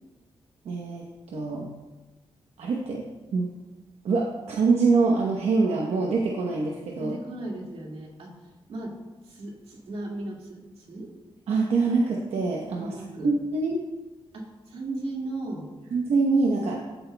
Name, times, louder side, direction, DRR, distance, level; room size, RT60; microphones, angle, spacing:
voice 1, 0.6-1.0 1.3-1.7 2.6-3.1 3.3-3.5 4.0-7.1 11.5-12.9 13.2-13.8 15.9-16.8, right 4 dB, 85° right, -1 dB, 1.0 m, -24 dB
voice 2, 7.0-9.0 9.2-11.1 12.7-13.3 14.3-15.7 16.8-17.0, right 2 dB, 70° right, -1 dB, 2.0 m, -36 dB
14.0 x 8.0 x 2.3 m, 1.2 s
wide cardioid pair, 125°, 10 cm